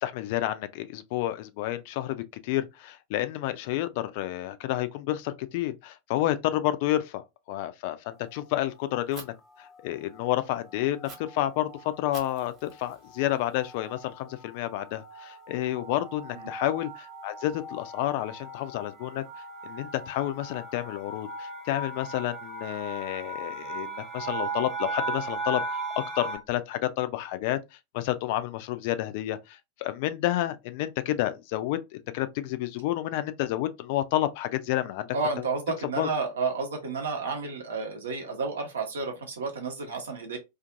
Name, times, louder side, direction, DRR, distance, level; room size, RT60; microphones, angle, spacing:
voice 1, 0.0-19.2 19.6-25.6 26.0-27.6 27.9-35.1 36.0-36.1, left 14 dB, 50° left, 0.3 m, -30 dB
sound 1, 8.2-8.7 9.5-9.8 10.1-10.4 10.6-26.4, right 2 dB, ahead, 0.8 m, -38 dB
Fire, 9.1-9.2 11.0-11.2 12.1-14.1, right 4 dB, 35° right, 0.9 m, -48 dB
voice 2, 35.1-40.4, right 4 dB, 65° right, 0.9 m, -31 dB
2.5 x 2.4 x 2.5 m
figure-of-eight pair, 90°, 0 cm